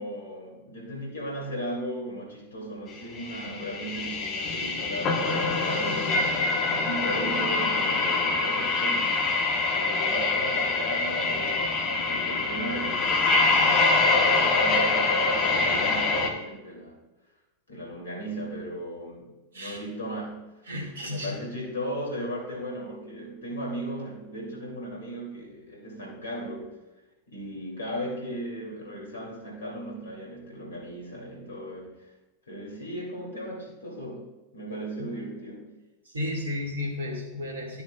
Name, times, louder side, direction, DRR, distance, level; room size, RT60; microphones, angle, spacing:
voice 1, 0.0-6.3 6.7-9.2 9.6-17.0 17.7-20.4 21.0-26.8 27.3-32.1 32.5-35.7, equal, 70° left, -2 dB, 2.9 m, -37 dB
sound 1, 3.2-16.3, left 3 dB, 30° left, 1.1 m, -25 dB
voice 2, 20.7-21.4 35.0-35.1 36.1-37.8, left 1 dB, 70° right, 0 dB, 2.2 m, -33 dB
12.5 x 6.9 x 2.4 m, 1.0 s
figure-of-eight pair, 90°, 0 cm